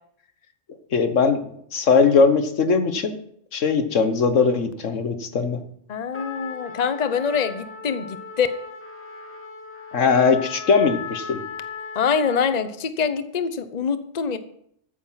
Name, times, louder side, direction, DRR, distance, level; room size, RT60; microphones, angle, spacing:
voice 1, 0.9-3.2 3.5-5.6 9.9-11.4, left 5 dB, 85° left, 9 dB, 1.6 m, -20 dB
voice 2, 5.9-8.5 11.9-14.4, left 6 dB, 40° left, 11 dB, 0.9 m, -24 dB
Trumpet, 6.1-12.7, left 5 dB, 10° left, 2.0 m, -37 dB
14.0 x 8.9 x 5.7 m, 0.69 s
omnidirectional pair, 1.2 m